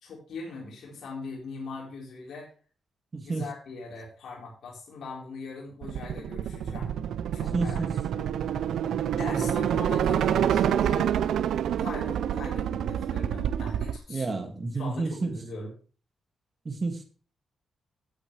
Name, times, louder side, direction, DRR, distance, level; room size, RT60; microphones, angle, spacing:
voice 1, 0.0-2.5 3.2-6.9 7.3-7.8 8.1-8.2 9.2-11.1 11.8-14.2 14.8-15.7, left 3 dB, 70° left, -5 dB, 4.4 m, -40 dB
voice 2, 3.1-3.5 7.5-7.9 9.3-9.6 14.1-15.4 16.6-17.0, right 3 dB, 35° right, 6 dB, 2.1 m, -30 dB
sound 1, 5.8-14.0, right 9 dB, 90° right, 0.6 m, -27 dB
14.0 x 8.6 x 3.3 m, 0.39 s
cardioid pair, 115°, 0 cm